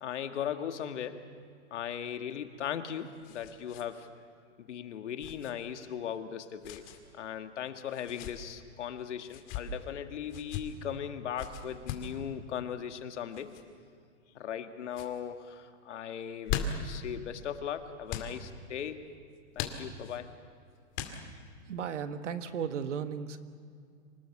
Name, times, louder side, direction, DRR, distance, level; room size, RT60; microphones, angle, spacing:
voice 1, 0.0-1.3 1.7-4.1 4.6-6.9 7.1-13.5 14.3-19.0 19.6-20.3, left 9 dB, 75° left, 7 dB, 1.9 m, -38 dB
sound 1, 2.5-3.9 4.2-4.3 5.2-5.5 6.6-7.0 7.9-8.3 9.2-9.6 10.3-10.6 11.4-12.1 13.3-13.6 14.3-14.6 14.9-15.1 16.2-17.0 18.1-18.3 19.5-20.2 20.9-21.5, left 7 dB, 35° left, 2.4 m, -38 dB
voice 2, 21.7-23.4, right 7 dB, 85° right, 9 dB, 1.6 m, -35 dB
26.0 x 19.0 x 7.2 m, 2.2 s
hypercardioid pair, 150°, 35 cm